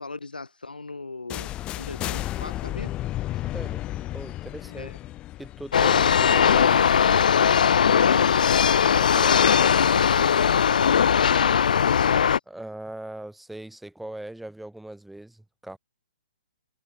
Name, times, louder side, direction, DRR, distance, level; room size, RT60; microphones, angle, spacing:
voice 1, 0.0-2.9 4.7-5.0 7.8-8.4 9.3-11.6, left 3 dB, 85° left, 4.9 m, -37 dB
sound 1, 1.3-7.1, left 15 dB, 20° left, 6.2 m, -33 dB
voice 2, 3.5-4.9 5.4-6.8 8.9-9.7 12.5-15.8, right 1 dB, ahead, 5.6 m, -40 dB
sound 2, 5.7-12.4, left 7 dB, 65° left, 0.5 m, -19 dB
figure-of-eight pair, 135°, 5 cm